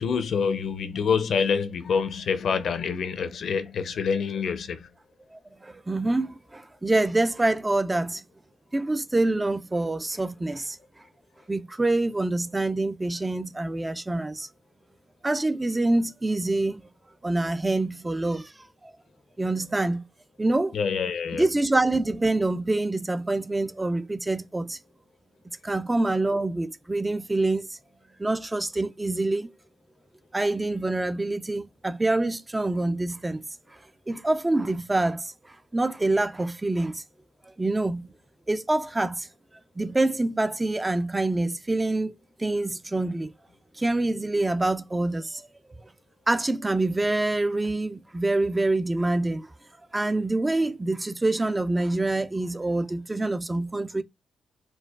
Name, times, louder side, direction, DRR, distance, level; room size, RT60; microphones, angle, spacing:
voice 1, 0.0-4.9 20.7-21.4, left 6 dB, 60° left, 0.6 m, -26 dB
voice 2, 5.3-8.2 8.7-10.8 11.5-14.5 15.2-16.8 17.2-18.9 19.4-20.1 20.4-20.8 21.3-24.8 25.6-27.8 28.2-29.5 30.3-33.8 34.1-37.0 37.5-38.1 38.5-39.3 39.8-43.3 43.8-45.5 45.8-45.9 46.3-49.5 49.9-54.0, right 2 dB, 15° right, 0.3 m, -26 dB
4.4 x 2.3 x 2.3 m
cardioid pair, 125°, 0 cm